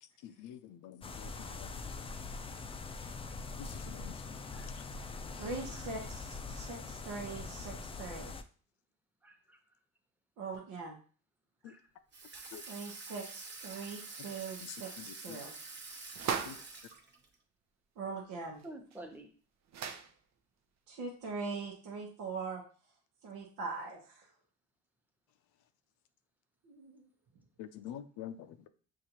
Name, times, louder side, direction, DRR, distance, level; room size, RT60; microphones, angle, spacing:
voice 1, 0.8-1.3 1.6-1.7 3.9-4.1 12.5-12.6 16.5-16.6 27.6-28.3, left 10 dB, 85° left, 10 dB, 0.5 m, -45 dB
sound 1, 1.0-8.4, left 4 dB, 20° left, 0.3 m, -43 dB
voice 2, 1.4-1.9 2.9-3.4 4.5-4.7 9.2-9.6 11.6-11.8 12.3-12.5 13.7-13.8 18.6-19.3, right 1 dB, 5° right, 3 dB, 0.9 m, -52 dB
voice 3, 5.4-8.3 10.4-11.0 12.7-15.5 18.0-18.6 20.9-22.6 23.2-24.3 26.6-27.1, right 4 dB, 85° right, -1 dB, 1.0 m, -42 dB
Water tap faucet / Sink (filling or washing), 12.1-17.4, right 3 dB, 35° right, 0.9 m, -47 dB
sound 2, 16.1-16.7 18.6-18.7 18.9-19.0 19.7-20.1, right 7 dB, 60° right, 0.6 m, -36 dB
6.5 x 2.5 x 2.9 m, 0.41 s
cardioid pair, 90°, 30 cm